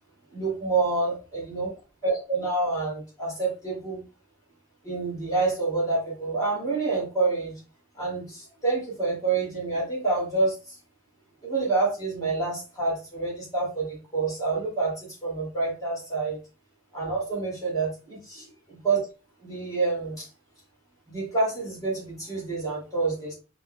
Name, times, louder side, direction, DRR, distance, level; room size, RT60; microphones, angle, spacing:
voice 1, 0.3-1.7 2.0-4.0 4.8-7.5 8.0-10.5 11.4-16.4 16.9-19.0 19.4-20.2 21.1-23.3, right 3 dB, 15° left, -5 dB, 2.5 m, -27 dB
5.7 x 3.3 x 2.2 m, 0.33 s
head